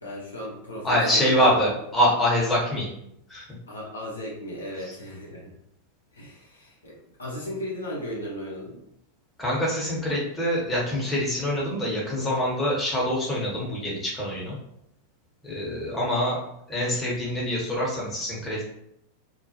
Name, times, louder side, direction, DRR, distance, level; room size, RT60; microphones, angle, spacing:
voice 1, 0.0-1.5 3.7-5.5 6.1-8.8, equal, 75° left, -5 dB, 0.7 m, -36 dB
voice 2, 0.8-2.9 3.3-3.5 4.9-5.0 9.4-14.6 15.4-16.4 16.7-18.6, equal, 15° left, -5 dB, 0.9 m, -25 dB
2.2 x 2.0 x 2.7 m, 0.76 s
figure-of-eight pair, 90°, 0 cm